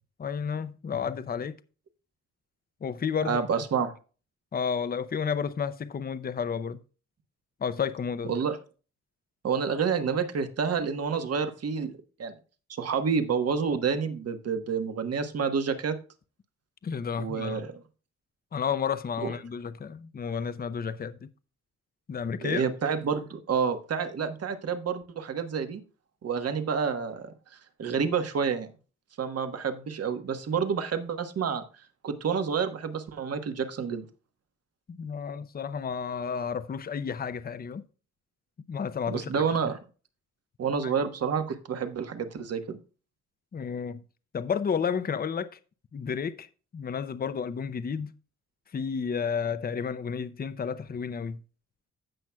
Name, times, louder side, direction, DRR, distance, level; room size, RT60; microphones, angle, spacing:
voice 1, 0.2-1.6 2.8-3.4 4.5-6.8 7.6-8.4 16.8-17.6 18.5-21.2 22.1-22.6 34.9-37.8 38.7-39.3 43.5-44.0 44.3-45.6 45.9-46.5 46.7-48.1 48.7-51.4, left 6 dB, 30° left, 0.6 m, -31 dB
voice 2, 3.2-3.9 8.3-8.6 9.4-12.3 12.7-16.0 17.2-17.7 19.2-19.3 22.4-25.8 26.2-27.3 27.8-28.7 29.2-31.6 32.0-34.0 39.1-39.8 40.6-42.8, right 6 dB, 55° right, 1.2 m, -29 dB
15.5 x 6.0 x 2.3 m
cardioid pair, 95°, 29 cm